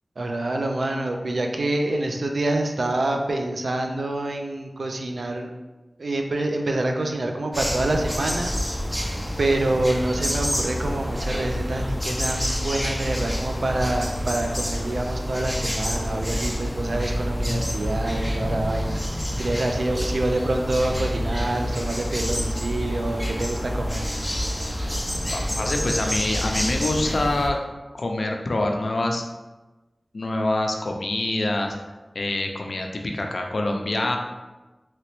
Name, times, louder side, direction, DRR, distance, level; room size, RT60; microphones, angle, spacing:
voice 1, 0.2-5.5 6.0-8.6 8.9-24.0, right 2 dB, 85° right, 3 dB, 0.4 m, -26 dB
sound 1, 7.5-27.5, equal, 5° left, 0.5 m, -28 dB
voice 2, 25.3-27.6 27.9-29.2 30.1-31.7 32.1-34.2, left 2 dB, 75° left, 2 dB, 0.4 m, -25 dB
2.9 x 2.9 x 3.0 m, 1.1 s
wide cardioid pair, 50°, 0 cm